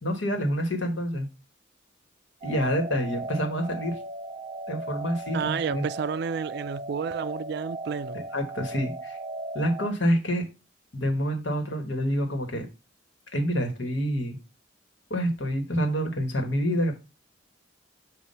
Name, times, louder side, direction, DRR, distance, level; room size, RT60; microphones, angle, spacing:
voice 1, 0.0-1.3 2.4-4.0 4.7-5.8 8.1-9.2 9.5-10.4 10.9-12.7 13.3-14.4 15.1-16.9, equal, 80° left, 1.4 m, -27 dB
sound 1, 2.4-9.9, right 2 dB, 30° right, 0.7 m, -37 dB
voice 2, 5.3-8.2, right 6 dB, 60° right, 0.3 m, -31 dB
7.1 x 2.5 x 5.3 m
head